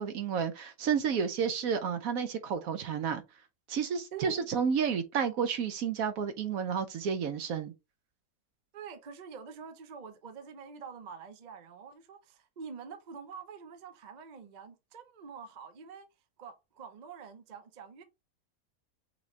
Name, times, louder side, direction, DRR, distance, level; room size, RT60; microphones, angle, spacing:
voice 1, 0.0-3.2 3.7-7.7, right 7 dB, 70° right, 1.1 m, -31 dB
voice 2, 4.1-4.5 8.7-16.1 16.4-18.0, right 6 dB, 40° right, 0.6 m, -46 dB
5.8 x 2.7 x 3.1 m
omnidirectional pair, 1.6 m